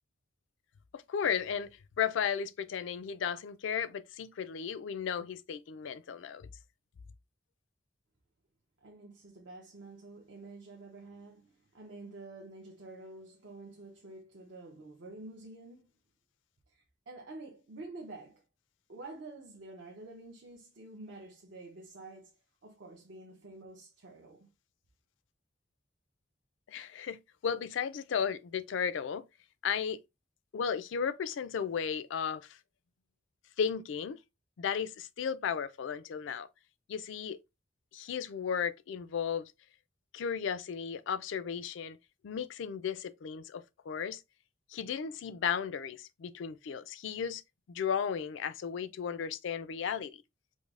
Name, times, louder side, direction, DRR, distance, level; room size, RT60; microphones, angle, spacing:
voice 1, 0.9-1.7 2.0-6.5 26.7-29.2 29.6-30.0 30.5-32.6 33.6-34.2 34.6-36.5 36.9-37.4 37.9-39.5 40.1-42.0 42.2-44.2 44.7-47.4 47.7-50.1, left 7 dB, 70° left, 0.3 m, -34 dB
voice 2, 8.8-15.9 16.7-18.4 18.9-24.5, right 2 dB, 70° right, 0.7 m, -49 dB
5.0 x 2.0 x 2.4 m
head